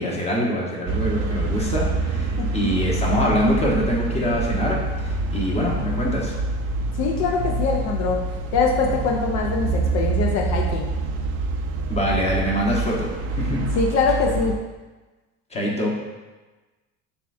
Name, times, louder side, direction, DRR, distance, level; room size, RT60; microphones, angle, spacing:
voice 1, 0.0-4.8 5.3-6.3 11.9-13.1 13.3-13.6 15.5-15.9, equal, 20° left, -3 dB, 1.0 m, -24 dB
sound 1, 0.9-14.5, right 3 dB, 45° right, 0.5 m, -26 dB
voice 2, 2.4-2.8 7.0-8.2 8.5-10.9 13.7-14.6, left 4 dB, 55° left, 0 dB, 0.6 m, -23 dB
6.7 x 2.4 x 2.6 m, 1.2 s
supercardioid pair, 100°, 33 cm